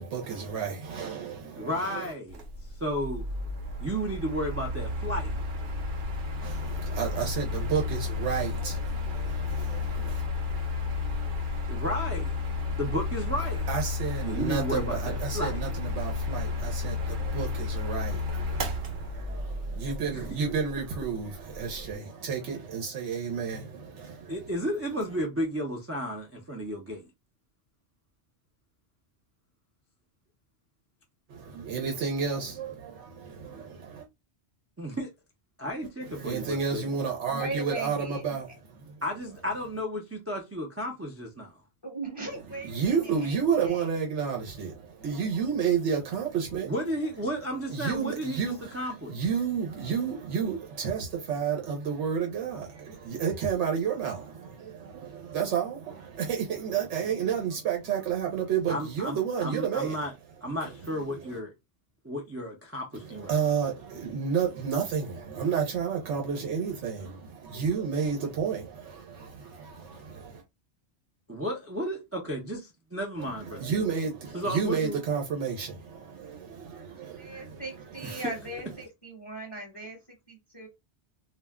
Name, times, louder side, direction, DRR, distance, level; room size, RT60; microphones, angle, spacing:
voice 1, 0.0-2.1 6.4-10.2 13.7-24.5 31.3-34.1 36.0-39.0 42.6-46.7 47.7-60.0 60.6-61.4 62.9-70.4 73.2-77.6 77.9-78.2, right 6 dB, 85° right, 1.0 m, -31 dB
voice 2, 1.5-2.4 2.8-3.2 3.8-5.3 11.7-12.4 12.8-13.7 14.2-15.6 20.1-20.4 24.3-27.1 34.8-35.1 35.6-36.8 39.0-41.5 46.7-49.1 58.7-60.1 60.4-61.5 62.0-63.4 71.3-73.7 74.3-75.0 78.0-78.1, equal, 20° right, 0.3 m, -33 dB
Mechanical fan, 2.3-21.9, left 3 dB, 55° right, 0.7 m, -32 dB
voice 3, 37.2-38.6 41.8-43.9 76.9-80.0 80.3-80.7, right 2 dB, 25° left, 0.7 m, -39 dB
2.4 x 2.1 x 3.4 m
omnidirectional pair, 1.2 m